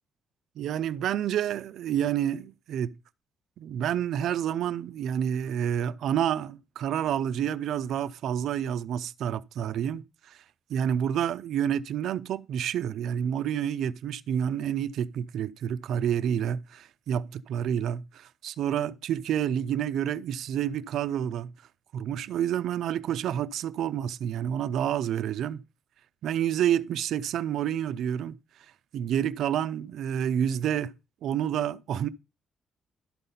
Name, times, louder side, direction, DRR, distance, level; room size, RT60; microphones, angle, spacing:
voice 1, 0.6-2.9 3.6-10.4 10.7-21.5 21.9-25.6 26.2-28.4 28.9-30.9 31.2-32.1, right 9 dB, 75° right, 0.5 m, -29 dB
12.0 x 4.0 x 5.4 m
cardioid pair, 90°, 0 cm